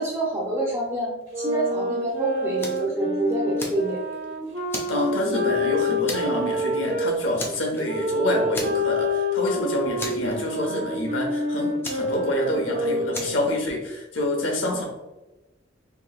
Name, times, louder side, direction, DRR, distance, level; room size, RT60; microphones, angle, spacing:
voice 1, 0.0-4.0, right 2 dB, 15° right, -4 dB, 0.7 m, -27 dB
sound 1, 1.3-7.1 7.8-13.5, left 1 dB, 75° right, 1.2 m, -27 dB
Fire, 2.6-2.9 3.3-4.2 4.7-5.6 6.1-6.5 6.8-6.9 7.4-8.1 8.5-9.1 9.4-9.5 10.0-10.8 11.8-12.7 13.1-13.5, left 1 dB, 10° left, 0.4 m, -35 dB
voice 2, 4.9-14.8, left 1 dB, 85° left, 0 dB, 0.8 m, -27 dB
2.9 x 2.8 x 2.3 m, 1.0 s
head